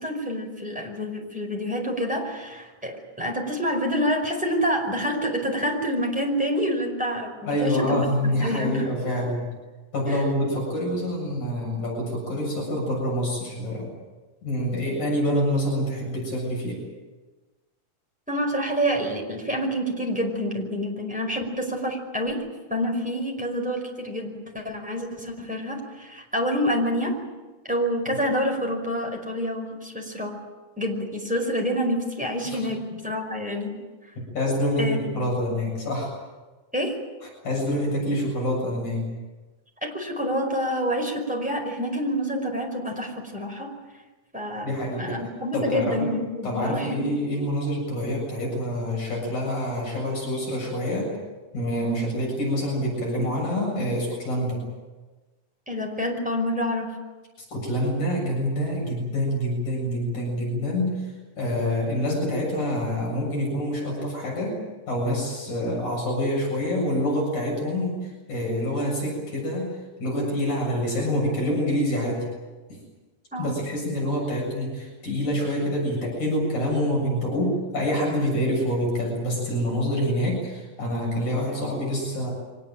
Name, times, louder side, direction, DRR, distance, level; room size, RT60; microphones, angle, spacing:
voice 1, 0.0-8.9 10.1-10.2 18.3-27.2 27.7-30.4 30.8-33.8 34.8-35.2 36.7-37.0 39.8-43.7 44.3-44.7 45.0-47.1 55.7-56.9 73.3-73.5, equal, ahead, 1 dB, 4.9 m, -27 dB
voice 2, 7.5-9.5 9.9-13.9 14.4-16.8 32.5-32.7 34.3-36.1 37.4-39.1 44.6-45.2 45.5-46.1 46.4-51.1 51.5-54.6 57.5-64.6 64.9-69.7 70.0-72.3 72.7-72.8 73.4-82.3, equal, 80° left, -2 dB, 8.8 m, -26 dB
24.5 x 20.0 x 9.1 m, 1.2 s
omnidirectional pair, 3.3 m